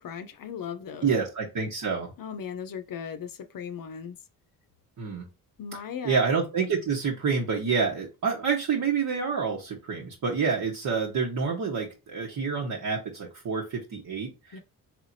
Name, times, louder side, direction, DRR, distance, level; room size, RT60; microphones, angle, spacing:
voice 1, 0.0-1.1 2.2-4.2 5.6-6.2 14.5-14.6, left 7 dB, 60° left, 0.7 m, -37 dB
voice 2, 1.0-2.1 5.0-5.3 6.0-14.6, right 5 dB, 55° right, 1.2 m, -28 dB
4.6 x 3.3 x 2.7 m
cardioid pair, 80°, 39 cm